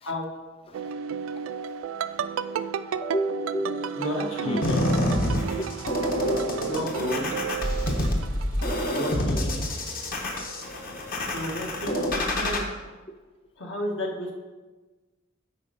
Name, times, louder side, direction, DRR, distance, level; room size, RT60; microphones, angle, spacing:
sound 1, 0.7-9.1 9.3-9.9, right 7 dB, 85° right, 0.3 m, -32 dB
voice 1, 3.0-3.9 4.5-4.6 6.2-6.7, equal, 30° left, 9 dB, 0.4 m, -30 dB
voice 2, 3.9-5.0 6.6-7.3 8.9-9.6 11.3-12.6 13.6-14.3, left 1 dB, 70° left, -1 dB, 1.5 m, -32 dB
sound 2, 4.6-12.6, left 1 dB, 45° left, 1.0 m, -27 dB
8.6 x 4.4 x 5.1 m, 1.3 s
head